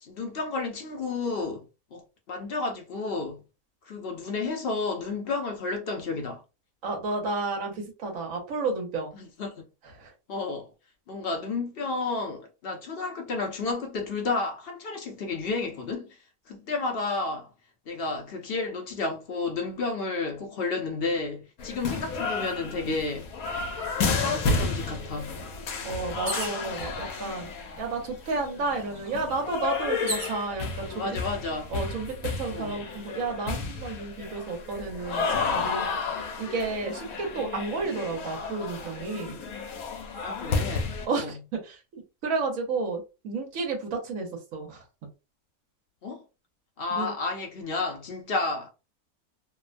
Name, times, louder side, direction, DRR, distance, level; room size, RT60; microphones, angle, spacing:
voice 1, 0.0-1.7 1.9-3.4 3.9-6.4 9.2-9.6 10.3-10.7 11.1-16.2 16.5-17.5 17.9-23.3 24.0-25.4 30.9-31.7 32.5-32.8 40.2-41.4 46.0-46.2 46.8-48.7, left 3 dB, 60° left, 0.6 m, -31 dB
voice 2, 6.8-9.1 9.8-10.1 25.8-27.5 27.8-31.2 31.7-39.4 41.0-45.1 46.9-47.1, right 3 dB, 70° right, 1.3 m, -32 dB
sound 1, 21.6-41.1, left 4 dB, 80° left, 1.0 m, -32 dB
sound 2, 26.2-26.7 27.6-27.7 28.0-30.4 31.2-31.7, right 2 dB, 30° right, 0.9 m, -36 dB
2.9 x 2.1 x 2.4 m
omnidirectional pair, 1.5 m